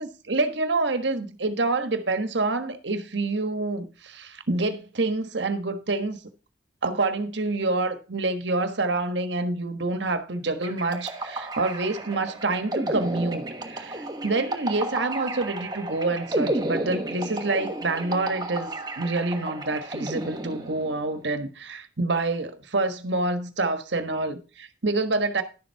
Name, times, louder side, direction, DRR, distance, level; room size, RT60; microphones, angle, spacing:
voice 1, 0.0-6.2 6.8-25.4, right 2 dB, 75° right, 1.4 m, -27 dB
sound 1, 10.6-21.1, right 1 dB, 20° right, 1.3 m, -32 dB
11.5 x 7.2 x 4.7 m
head